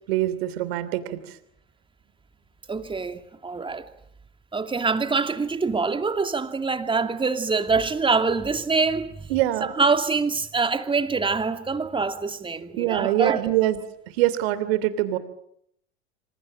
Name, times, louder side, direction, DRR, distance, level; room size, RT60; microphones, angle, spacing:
voice 1, 0.1-1.4 9.3-9.7 12.7-13.8 14.1-15.2, right 14 dB, 65° right, 3.0 m, -24 dB
voice 2, 2.7-3.9 4.5-9.3 9.6-13.4, right 4 dB, 15° right, 2.5 m, -25 dB
27.0 x 26.5 x 7.5 m
hypercardioid pair, 85°, 34 cm